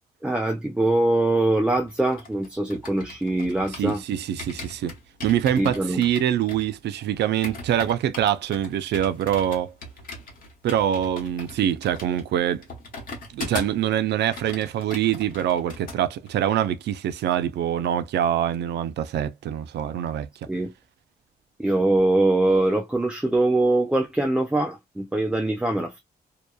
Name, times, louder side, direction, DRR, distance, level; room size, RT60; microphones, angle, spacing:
voice 1, 0.2-4.0 5.6-6.0 20.5-20.7 21.6-26.0, right 2 dB, 5° right, 0.3 m, -23 dB
sound 1, 1.7-4.0 4.4-13.9 14.2-16.0 16.3-16.5, left 2 dB, 55° left, 1.0 m, -39 dB
voice 2, 3.8-4.9 5.2-9.7 10.6-12.6 13.3-20.3, right 10 dB, 85° right, 0.4 m, -24 dB
2.8 x 2.2 x 2.2 m
wide cardioid pair, 170°, 17 cm